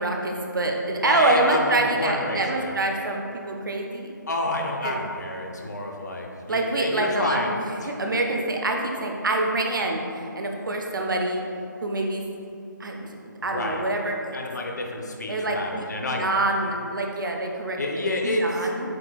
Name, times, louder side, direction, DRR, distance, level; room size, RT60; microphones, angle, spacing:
voice 1, 0.0-4.1 4.8-5.0 6.5-11.4 11.8-12.2 12.8-13.1 13.4-14.2 15.3-18.9, right 2 dB, 70° right, 1 dB, 0.6 m, -26 dB
voice 2, 1.0-2.7 4.3-8.1 13.4-13.8 14.3-16.4 17.8-18.7, left 2 dB, 55° left, 1 dB, 0.6 m, -29 dB
7.5 x 2.6 x 2.2 m, 2.7 s
figure-of-eight pair, 175°, 11 cm